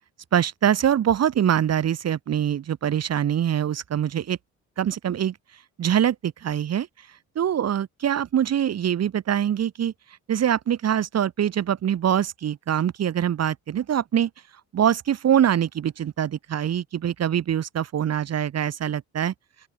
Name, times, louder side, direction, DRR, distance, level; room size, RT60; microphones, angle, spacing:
voice 1, 0.3-4.4 4.8-5.4 5.8-6.9 7.3-9.9 10.3-14.3 14.7-19.3, right 9 dB, 55° right, 1.7 m, -24 dB
open air
cardioid pair, 90°, 30 cm